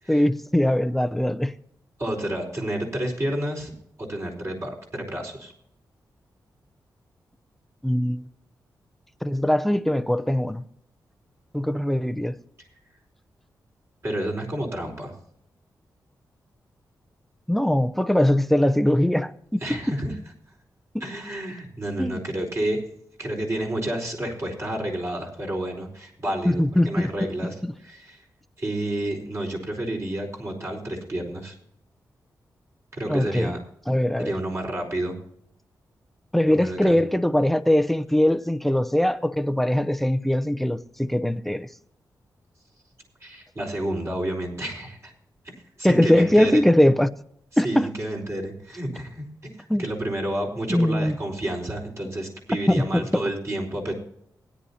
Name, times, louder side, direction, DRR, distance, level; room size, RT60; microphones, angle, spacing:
voice 1, 0.1-1.5 7.8-8.2 9.2-10.6 11.5-12.4 17.5-19.8 20.9-21.0 22.0-22.2 26.4-27.1 33.1-33.5 33.9-34.3 36.3-41.7 45.8-47.1 47.6-47.9 49.7-49.8 50.7-51.2 52.7-53.2, left 1 dB, 5° left, 0.6 m, -21 dB
voice 2, 2.0-3.7 4.0-5.5 14.0-15.2 19.6-20.1 21.0-22.9 23.2-28.2 28.6-31.6 32.9-33.6 34.2-35.2 36.4-37.0 43.2-45.1 45.8-46.6 47.5-49.3 49.8-53.9, right 1 dB, 40° right, 4.3 m, -30 dB
20.5 x 10.0 x 2.8 m
cardioid pair, 80°, 7 cm